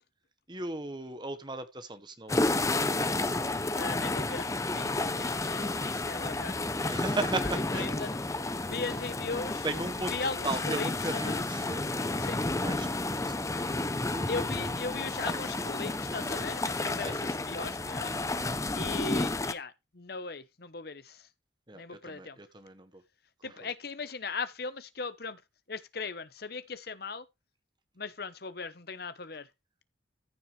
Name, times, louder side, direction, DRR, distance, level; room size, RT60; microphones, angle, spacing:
voice 1, 0.5-2.6 6.9-7.9 9.6-10.1 10.4-12.9 13.2-14.3 14.6-14.7 15.3-15.4 17.0-17.2 21.7-23.0 23.4-23.5, right 2 dB, 25° right, 1.4 m, -37 dB
sound 1, 2.3-19.5, left 2 dB, 15° left, 0.7 m, -31 dB
voice 2, 3.7-6.6 7.5-8.2 8.6-9.7 10.1-11.4 12.2-12.4 14.3-18.1 18.7-21.3 21.7-22.4 23.4-25.4 25.7-27.3 28.0-29.5, left 4 dB, 55° left, 1.0 m, -38 dB
14.5 x 6.7 x 3.3 m
head